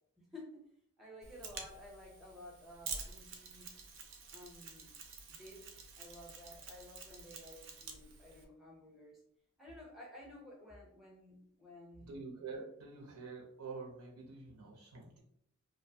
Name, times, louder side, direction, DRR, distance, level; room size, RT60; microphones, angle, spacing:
voice 1, 0.2-0.7 1.0-3.7 4.3-4.9 5.3-5.7 5.9-9.2 9.6-12.2, left 1 dB, ahead, -3 dB, 0.5 m, -53 dB
Mechanisms, 1.2-8.4, right 5 dB, 55° right, 0.4 m, -49 dB
voice 2, 12.0-15.2, right 4 dB, 85° right, 0 dB, 0.7 m, -47 dB
2.5 x 2.2 x 2.6 m, 0.73 s
head